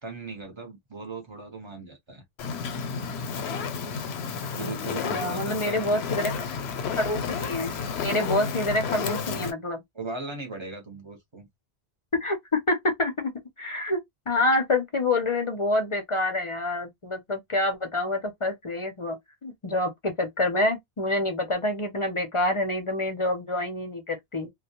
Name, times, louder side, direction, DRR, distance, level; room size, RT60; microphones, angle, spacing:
voice 1, 0.0-2.2 4.5-5.9 9.4-9.5 9.9-11.5, right 3 dB, 30° right, 0.9 m, -38 dB
Fire, 2.4-9.5, left 6 dB, 85° left, 0.8 m, -31 dB
voice 2, 5.1-6.4 6.9-7.7 8.0-9.8 12.1-13.3 13.6-14.0 14.3-19.2 19.4-24.5, left 2 dB, 40° left, 0.5 m, -27 dB
2.2 x 2.1 x 2.8 m
omnidirectional pair, 1.1 m